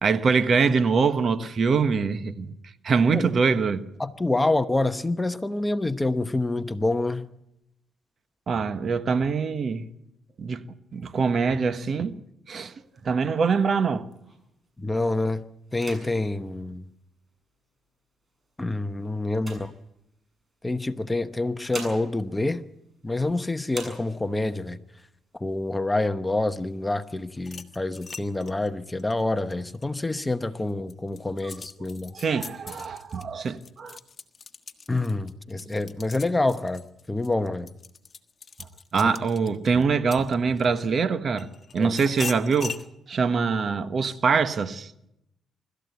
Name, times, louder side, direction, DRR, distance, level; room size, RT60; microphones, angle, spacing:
voice 1, 0.0-2.5 2.8-3.9 8.5-9.9 10.4-10.7 10.9-12.2 12.5-12.7 13.0-14.1 32.1-34.0 38.9-42.8 43.1-44.9, right 5 dB, 50° right, 1.3 m, -24 dB
voice 2, 4.0-7.3 14.8-15.5 15.7-16.8 18.6-19.7 20.6-22.6 23.0-24.8 25.3-32.1 34.9-37.7 39.0-39.1 41.8-41.9, left 2 dB, 15° left, 0.9 m, -27 dB
sound 1, 12.5-14.6 15.1-15.3 15.7-17.6 18.3-20.4 21.3-23.3 23.7-24.5 25.0-25.1 25.4-26.0 26.5-27.4, right 2 dB, 30° right, 7.2 m, -45 dB
sound 2, 27.4-30.2 30.7-40.8 41.4-42.9, left 5 dB, 40° left, 1.4 m, -41 dB
24.5 x 13.5 x 8.2 m
cardioid pair, 80°, 0 cm